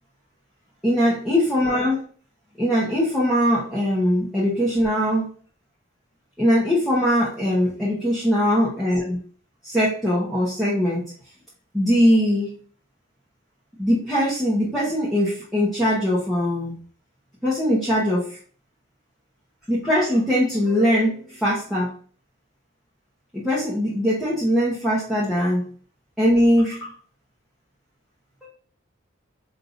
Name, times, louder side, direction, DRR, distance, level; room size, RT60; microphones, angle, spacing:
voice 1, 0.8-2.0 2.6-5.3 6.4-9.2 9.6-11.1 11.7-12.5 13.8-16.8 17.4-18.4 19.7-21.9 23.3-25.7 26.2-26.9 28.4-28.5, equal, ahead, -9 dB, 1.0 m, -21 dB
5.3 x 2.8 x 2.5 m, 0.44 s
head